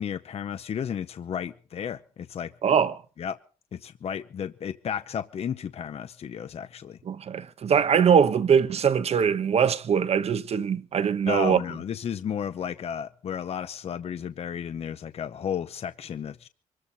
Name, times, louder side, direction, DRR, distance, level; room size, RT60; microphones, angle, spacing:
voice 1, 0.0-2.5 3.2-3.4 3.7-7.0 11.3-16.5, left 8 dB, 50° left, 0.8 m, -33 dB
voice 2, 2.6-3.0 7.1-11.6, right 7 dB, 50° right, 1.2 m, -22 dB
24.5 x 14.0 x 4.2 m
cardioid pair, 140°, 13 cm